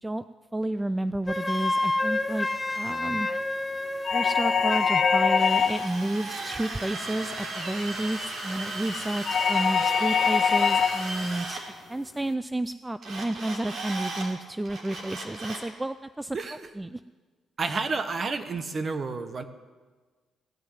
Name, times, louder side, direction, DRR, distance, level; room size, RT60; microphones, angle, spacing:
voice 1, 0.5-2.5 2.7-3.3 4.1-11.6 11.9-17.0, right 1 dB, 10° right, 13 dB, 0.4 m, -31 dB
Wind instrument woodwind instrument, 1.3-5.5, left 2 dB, 15° left, 0.9 m, -29 dB
sound 1, 4.1-6.0 9.3-11.1, left 6 dB, 50° left, 0.6 m, -23 dB
Drill, 5.3-11.6 13.0-14.3 14.6-15.7, right 2 dB, 60° right, 3.2 m, -36 dB
voice 2, 17.6-19.4, right 4 dB, 40° right, 10 dB, 1.2 m, -30 dB
16.5 x 6.3 x 10.0 m, 1.4 s
cardioid pair, 90°, 0 cm